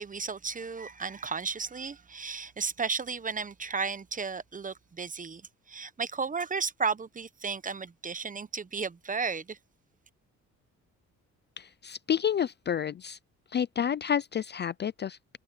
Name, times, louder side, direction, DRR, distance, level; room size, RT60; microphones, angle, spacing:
voice 1, 0.0-5.4 5.7-9.6, right 5 dB, 25° right, 1.0 m, -34 dB
voice 2, 11.6-13.2 13.5-15.4, left 8 dB, 35° left, 0.4 m, -30 dB
cardioid pair, 90°, 30 cm